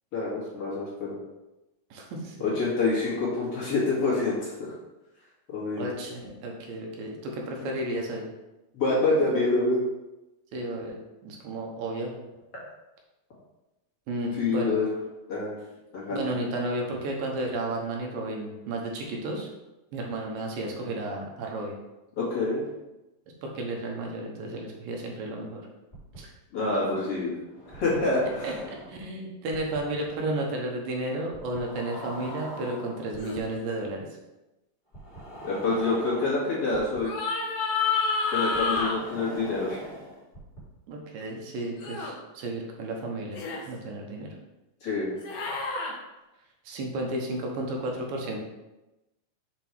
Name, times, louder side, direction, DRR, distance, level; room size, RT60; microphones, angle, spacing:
voice 1, 0.1-1.2 2.4-4.7 5.5-5.8 7.6-7.7 8.7-9.8 14.4-14.9 15.3-15.6 15.9-16.2 22.2-22.6 26.5-27.3 27.7-28.5 35.4-37.1 38.3-39.8 44.8-45.1, left 3 dB, 45° left, -7 dB, 2.5 m, -26 dB
voice 2, 1.9-2.5 5.8-8.3 10.5-11.0 11.2-12.1 14.1-14.7 16.1-19.5 19.9-21.7 23.4-25.6 26.2-26.3 28.4-34.1 40.9-44.3 46.6-48.4, right 1 dB, 80° right, 0 dB, 2.8 m, -33 dB
sound 1, 25.9-26.2 27.5-29.0 29.5-29.8 31.3-33.4 34.9-37.0 38.5-40.6, equal, 15° left, 2.2 m, -42 dB
sound 2, 33.2-33.4 37.0-39.0 41.8-42.1 43.4-43.6 45.2-45.9, left 4 dB, 65° left, 2.0 m, -28 dB
7.2 x 4.5 x 4.6 m, 1.0 s
omnidirectional pair, 4.1 m